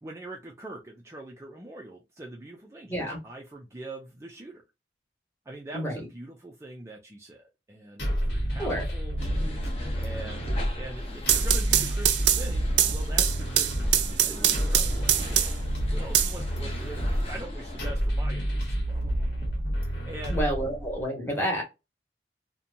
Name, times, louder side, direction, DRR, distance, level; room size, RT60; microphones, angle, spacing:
voice 1, 0.0-4.6 5.5-9.2 10.0-15.5 15.9-19.3 20.1-20.4, right 1 dB, 15° right, 0 dB, 0.4 m, -43 dB
voice 2, 2.9-3.2 5.7-6.1 8.6-8.8 20.3-21.6, equal, 10° left, -2 dB, 1.0 m, -29 dB
sound 1, 8.0-21.0, equal, 80° left, 1.0 m, -29 dB
sound 2, 9.2-17.9, left 1 dB, 35° left, 0.7 m, -41 dB
sound 3, 11.0-15.7 16.1-17.1, right 11 dB, 90° right, 0.4 m, -24 dB
2.8 x 2.2 x 2.5 m, 0.25 s
head